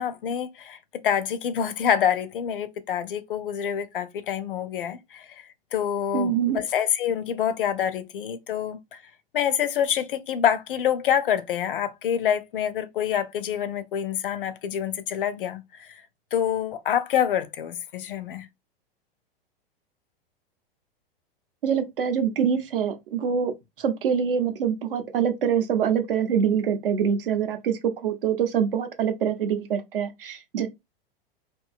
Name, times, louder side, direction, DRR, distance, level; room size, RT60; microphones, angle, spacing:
voice 1, 0.0-5.4 5.7-8.8 9.3-16.0 16.3-18.5, left 9 dB, 60° left, 0.4 m, -26 dB
voice 2, 6.1-6.6 21.6-23.5 23.8-30.7, right 7 dB, 65° right, 0.6 m, -25 dB
2.6 x 2.2 x 2.3 m
figure-of-eight pair, 100°, 30 cm